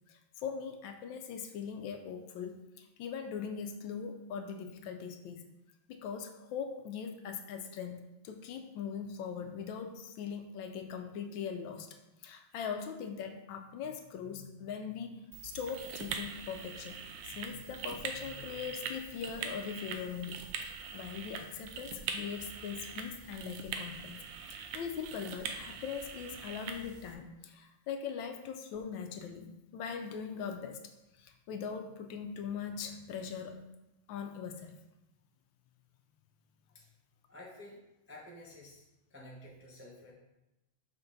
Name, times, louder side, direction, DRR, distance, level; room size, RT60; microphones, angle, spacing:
voice 1, 0.1-5.5 5.9-11.9 12.2-15.1 15.4-17.0 17.3-24.2 24.5-30.8 31.2-33.7 34.1-34.8, left 7 dB, 75° left, 6 dB, 1.3 m, -41 dB
sound 1, 15.3-27.1, right 6 dB, 75° right, 1.3 m, -43 dB
voice 2, 37.3-37.8 38.1-38.8 39.1-40.1, left 1 dB, 15° right, -4 dB, 0.5 m, -51 dB
5.9 x 4.3 x 3.9 m, 0.93 s
omnidirectional pair, 2.2 m